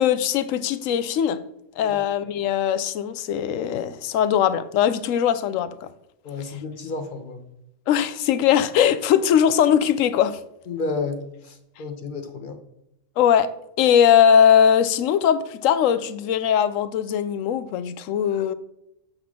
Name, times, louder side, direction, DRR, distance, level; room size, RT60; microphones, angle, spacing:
voice 1, 0.0-1.4 1.8-5.9 7.9-10.4 13.2-13.5 13.8-18.5, left 9 dB, 80° left, 1.0 m, -20 dB
voice 2, 6.2-7.4 10.7-12.6, left 3 dB, 45° left, 0.9 m, -31 dB
7.7 x 6.7 x 3.6 m
omnidirectional pair, 1.4 m